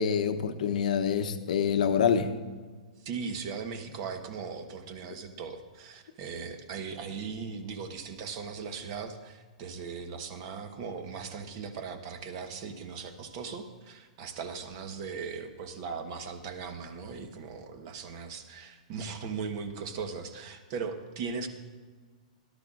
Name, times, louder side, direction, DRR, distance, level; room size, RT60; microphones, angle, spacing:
voice 1, 0.0-2.3, left 7 dB, 65° left, 9 dB, 0.9 m, -26 dB
voice 2, 3.0-21.5, right 5 dB, 35° right, 7 dB, 1.1 m, -38 dB
17.5 x 11.5 x 2.5 m, 1.5 s
hypercardioid pair, 165°, 4 cm